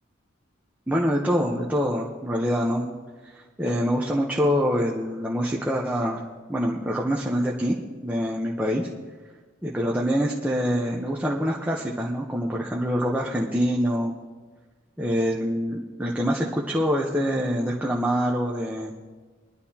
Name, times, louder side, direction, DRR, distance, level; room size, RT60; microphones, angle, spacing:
voice 1, 0.9-3.0 3.6-6.2 6.5-7.8 8.0-8.9 9.6-14.1 15.0-18.9, equal, 10° right, -3 dB, 0.9 m, -25 dB
22.5 x 11.0 x 2.9 m, 1.4 s
head